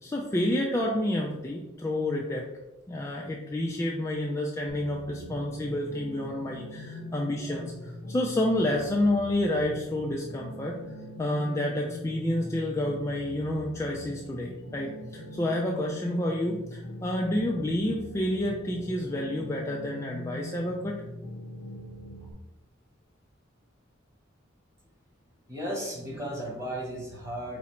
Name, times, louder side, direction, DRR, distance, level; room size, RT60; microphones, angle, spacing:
voice 1, 0.0-2.4 2.9-10.8 11.2-21.0, left 1 dB, 15° left, -1 dB, 0.3 m, -29 dB
sound 1, 4.7-22.3, equal, 75° left, 0.7 m, -42 dB
voice 2, 25.5-27.6, equal, 15° right, -3 dB, 1.0 m, -35 dB
4.8 x 2.0 x 4.2 m, 0.98 s
head